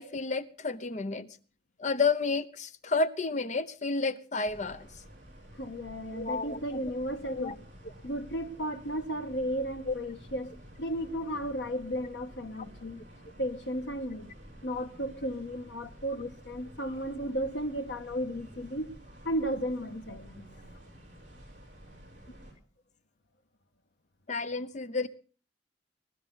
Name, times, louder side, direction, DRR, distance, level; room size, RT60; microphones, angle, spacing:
voice 1, 0.0-1.4 1.8-4.9 6.1-6.8 7.2-7.5 7.8-7.9 9.8-9.9 16.1-16.2 24.3-25.1, left 4 dB, 45° left, 0.9 m, -31 dB
sound 1, 4.4-22.5, equal, 45° right, 7.2 m, -51 dB
voice 2, 5.6-7.6 8.0-10.5 10.8-13.0 13.4-14.3 14.6-18.9 19.2-20.4, equal, 80° left, 1.7 m, -34 dB
21.0 x 12.0 x 4.0 m
head